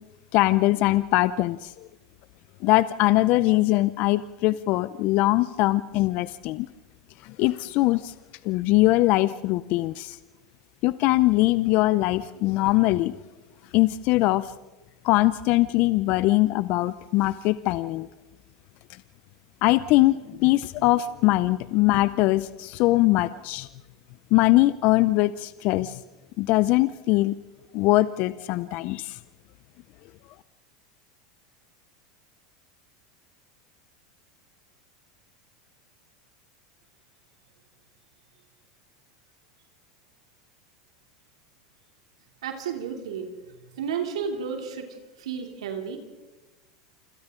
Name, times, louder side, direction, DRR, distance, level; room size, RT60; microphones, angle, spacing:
voice 1, 0.3-1.9 2.6-6.7 7.2-8.1 8.4-10.2 10.8-13.1 13.7-14.5 15.0-18.1 19.6-23.7 24.3-26.0 26.4-27.3 27.7-29.2, left 18 dB, 55° left, 16 dB, 0.6 m, -22 dB
voice 2, 42.4-43.3 43.8-44.9 45.2-46.0, right 7 dB, 80° right, 3 dB, 2.9 m, -31 dB
28.5 x 26.5 x 3.8 m, 1.2 s
hypercardioid pair, 100°, 3 cm